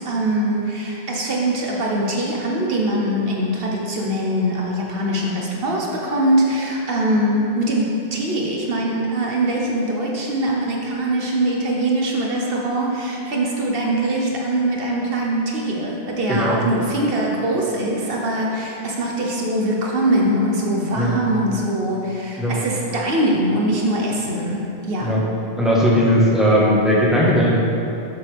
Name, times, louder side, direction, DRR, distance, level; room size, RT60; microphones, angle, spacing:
voice 1, 0.0-25.2, right 1 dB, 65° right, -2 dB, 1.2 m, -22 dB
voice 2, 16.3-16.6 20.9-21.2 22.4-22.6 25.0-25.2 25.6-27.5, equal, ahead, -7 dB, 1.4 m, -17 dB
7.7 x 7.4 x 3.5 m, 2.8 s
omnidirectional pair, 1.1 m